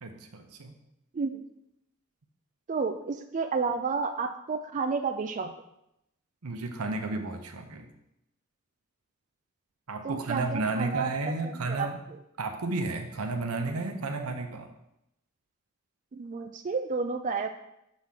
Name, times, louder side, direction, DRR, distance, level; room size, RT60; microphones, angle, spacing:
voice 1, 0.0-0.8 6.4-7.9 9.9-12.0 12.4-14.7, right 3 dB, 90° right, 5 dB, 0.9 m, -32 dB
voice 2, 2.7-5.5 10.0-11.1 11.7-11.9 16.1-17.5, right 5 dB, 35° right, 6 dB, 0.3 m, -31 dB
6.3 x 3.6 x 5.8 m, 0.81 s
head